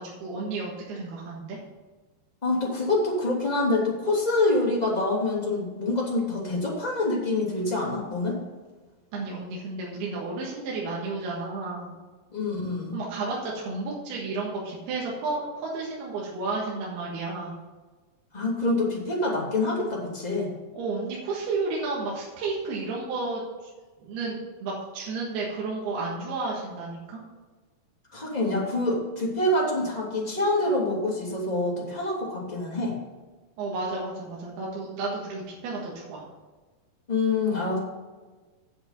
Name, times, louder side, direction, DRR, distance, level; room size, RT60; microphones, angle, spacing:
voice 1, 0.0-1.6 9.1-11.9 12.9-17.5 20.7-23.4 24.0-27.2 33.6-36.2, right 3 dB, 80° right, -4 dB, 3.5 m, -32 dB
voice 2, 2.4-8.4 12.3-13.0 18.3-20.5 28.1-33.0 37.1-37.8, left 2 dB, 15° left, -5 dB, 2.1 m, -26 dB
8.3 x 7.8 x 5.8 m, 1.3 s
omnidirectional pair, 4.6 m